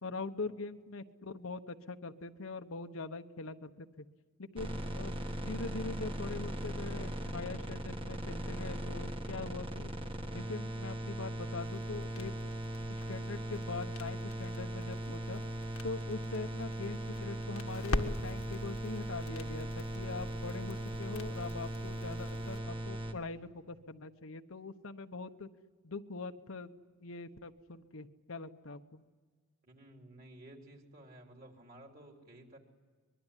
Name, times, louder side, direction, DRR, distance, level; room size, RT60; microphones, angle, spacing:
voice 1, 0.0-4.1 4.4-9.9 10.3-12.3 12.9-15.4 15.8-25.5 25.8-26.7 27.0-29.0, left 3 dB, 70° left, 8 dB, 1.0 m, -42 dB
sound 1, 4.6-23.1, right 1 dB, 25° right, 1.5 m, -39 dB
sound 2, 11.6-22.6, left 1 dB, 85° left, 1.6 m, -44 dB
voice 2, 29.6-32.6, right 1 dB, 40° right, 2 dB, 3.5 m, -54 dB
24.5 x 22.0 x 10.0 m, 1.5 s
head